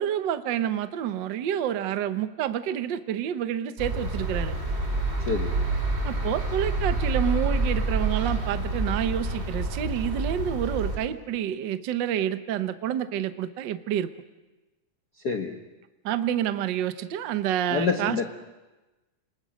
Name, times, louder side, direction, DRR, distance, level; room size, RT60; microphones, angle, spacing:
voice 1, 0.0-4.5 6.0-14.1 16.0-18.2, right 10 dB, 90° right, 10 dB, 0.9 m, -28 dB
sound 1, 3.8-11.0, right 2 dB, 20° right, 2.9 m, -28 dB
voice 2, 5.2-5.5 15.2-15.5 17.7-18.2, left 5 dB, 55° left, 5 dB, 1.1 m, -27 dB
29.0 x 20.5 x 6.5 m, 1.1 s
omnidirectional pair, 3.5 m